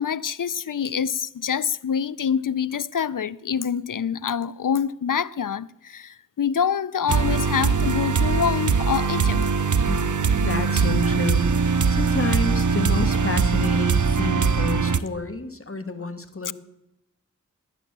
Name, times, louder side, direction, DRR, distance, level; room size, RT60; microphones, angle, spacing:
voice 1, 0.0-9.4 16.5-16.6, left 7 dB, 90° left, 0.5 m, -26 dB
sound 1, 7.1-15.0, right 5 dB, 70° right, 0.7 m, -21 dB
voice 2, 9.9-16.5, left 3 dB, 45° left, 1.8 m, -30 dB
18.5 x 10.0 x 6.7 m
wide cardioid pair, 45°, 31 cm